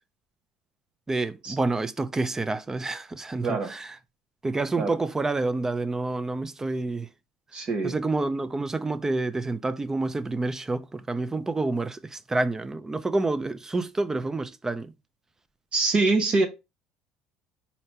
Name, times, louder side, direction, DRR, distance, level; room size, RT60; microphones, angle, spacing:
voice 1, 1.1-4.0 4.4-7.1 7.6-14.9, right 2 dB, 20° right, 0.6 m, -28 dB
voice 2, 7.5-7.9 15.7-16.5, right 3 dB, 45° right, 1.0 m, -24 dB
4.3 x 2.8 x 4.3 m
hypercardioid pair, 65°, 3 cm